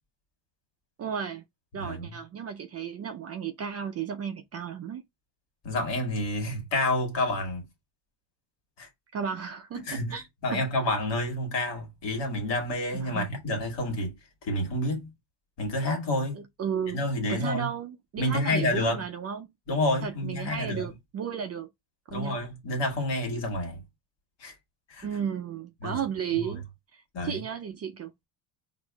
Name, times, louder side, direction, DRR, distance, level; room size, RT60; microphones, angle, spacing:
voice 1, 1.0-1.4 1.7-5.0 9.1-10.2 10.5-10.6 12.9-13.3 16.3-17.0 17.3-19.5 20.0-21.7 22.1-22.4 25.0-26.6 26.9-28.1, right 7 dB, 35° right, 0.4 m, -34 dB
voice 2, 1.8-2.2 5.6-7.6 8.8-8.9 9.7-15.1 15.6-16.4 16.9-17.7 18.2-19.0 19.7-20.9 22.1-23.8 24.4-24.5 24.9-25.1 25.8-26.0 26.3-26.5 27.1-27.4, left 1 dB, 60° left, 1.7 m, -29 dB
4.6 x 2.6 x 2.2 m
cardioid pair, 100°, 47 cm